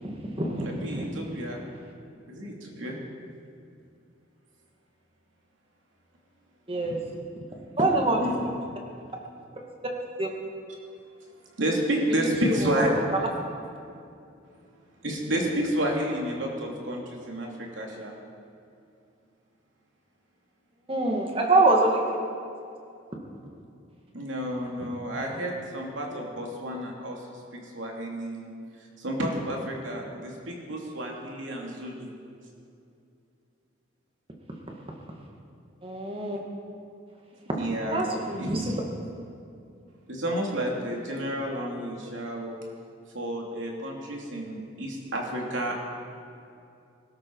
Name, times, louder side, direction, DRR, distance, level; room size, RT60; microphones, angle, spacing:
voice 1, 0.0-1.1 6.7-7.0 7.8-8.3 10.2-10.3 12.1-12.9 20.9-22.0 35.8-36.4 37.9-38.8, right 2 dB, 30° right, 0 dB, 2.1 m, -25 dB
voice 2, 0.6-1.6 2.3-3.0 8.2-8.5 11.6-13.0 15.0-18.1 24.1-28.5 29.0-32.1 37.5-38.1 38.4-38.7 40.1-42.6 43.1-45.8, right 1 dB, 85° right, 0 dB, 2.9 m, -30 dB
21.5 x 13.0 x 4.8 m, 2.5 s
head